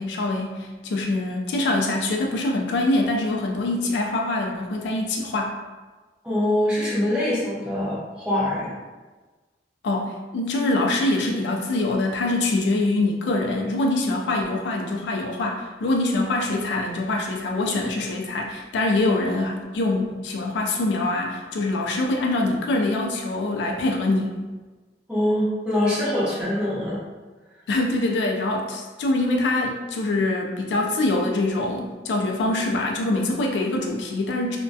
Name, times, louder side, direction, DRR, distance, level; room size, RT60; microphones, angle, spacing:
voice 1, 0.0-5.6 9.8-24.4 27.7-34.6, left 2 dB, 75° left, 1 dB, 0.3 m, -24 dB
voice 2, 6.2-8.7 25.1-27.0, left 1 dB, 5° right, -10 dB, 0.8 m, -24 dB
2.2 x 2.1 x 2.6 m, 1.3 s
head